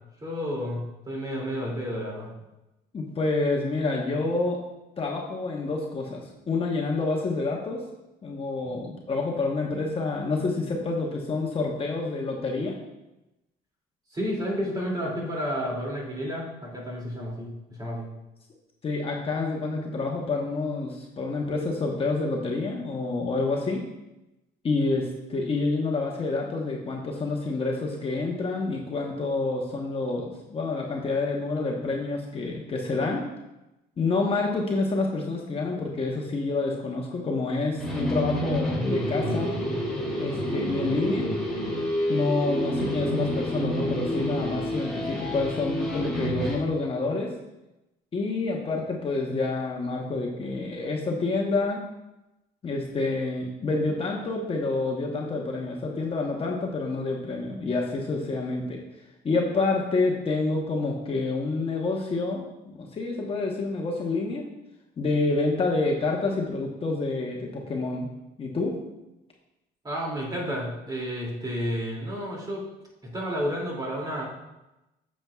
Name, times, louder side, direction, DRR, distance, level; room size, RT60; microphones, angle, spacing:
voice 1, 0.2-2.3 14.1-17.5 17.8-18.1 69.8-72.6 73.0-74.3, equal, 25° right, -3 dB, 2.6 m, -31 dB
voice 2, 2.9-4.6 5.0-7.8 8.2-12.8 18.8-23.8 24.6-33.2 34.0-39.6 40.2-41.3 42.1-47.3 48.1-51.8 52.6-58.8 59.2-64.4 65.0-68.1 68.4-68.8, left 3 dB, 35° left, -1 dB, 1.1 m, -28 dB
sound 1, 37.8-46.6, equal, ahead, 2.8 m, -28 dB
8.7 x 7.5 x 2.4 m, 0.97 s
cardioid pair, 110°, 17 cm